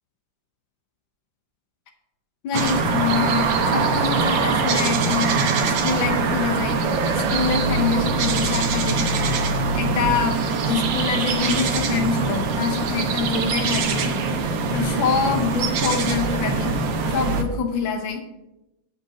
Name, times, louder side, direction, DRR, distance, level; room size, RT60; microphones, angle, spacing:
voice 1, 2.4-6.8 7.1-9.1 9.7-14.2 14.7-16.8 17.1-18.3, left 6 dB, 90° left, 3 dB, 1.7 m, -25 dB
sound 1, 2.5-17.4, right 4 dB, 80° right, 1.7 m, -23 dB
8.2 x 5.2 x 7.4 m, 0.94 s
omnidirectional pair, 2.0 m